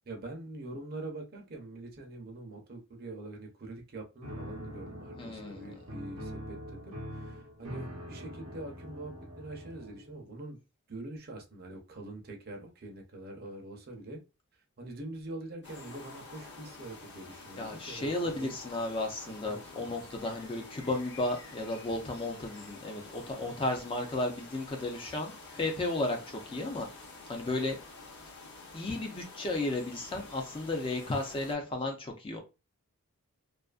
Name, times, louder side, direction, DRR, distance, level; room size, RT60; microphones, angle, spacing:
voice 1, 0.1-10.6 10.9-14.2 14.8-18.6 19.4-20.3, right 2 dB, 45° right, 2 dB, 0.6 m, -44 dB
Piano, 4.2-10.1, equal, 80° right, 0.7 m, -43 dB
voice 2, 5.2-5.6 17.6-26.9 27.3-27.8 28.7-32.4, left 2 dB, 25° left, 3 dB, 0.4 m, -34 dB
sound 1, 15.6-31.5, left 3 dB, 50° left, 0.8 m, -49 dB
2.5 x 2.4 x 2.3 m, 0.28 s
head